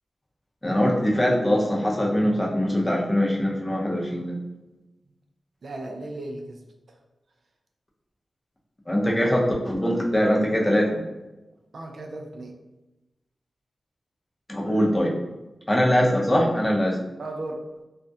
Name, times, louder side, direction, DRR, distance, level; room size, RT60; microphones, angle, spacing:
voice 1, 0.6-4.3 8.9-11.0 14.5-15.1 15.7-17.0, equal, 20° left, -2 dB, 0.5 m, -22 dB
voice 2, 5.6-6.6 11.7-12.5 17.2-17.6, right 2 dB, 70° right, 2 dB, 0.3 m, -35 dB
2.3 x 2.0 x 2.6 m, 1.0 s
wide cardioid pair, 75°, 0 cm